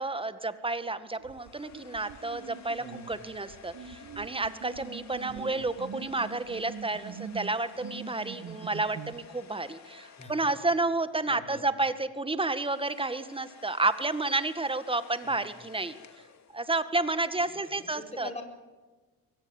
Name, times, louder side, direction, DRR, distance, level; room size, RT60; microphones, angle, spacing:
voice 1, 0.0-16.0 16.5-18.3, right 2 dB, 15° right, 12 dB, 1.8 m, -31 dB
sound 1, 1.1-11.3 12.3-17.1, left 7 dB, 45° left, 2.7 m, -53 dB
sound 2, 1.2-9.3, right 7 dB, 55° right, 1.7 m, -44 dB
voice 2, 2.8-3.1 5.3-5.8 10.2-10.3 11.3-11.7 15.2-15.4 17.6-18.4, left 2 dB, 15° left, 3 dB, 4.8 m, -44 dB
23.0 x 17.5 x 7.3 m, 1.3 s
supercardioid pair, 70°, 39 cm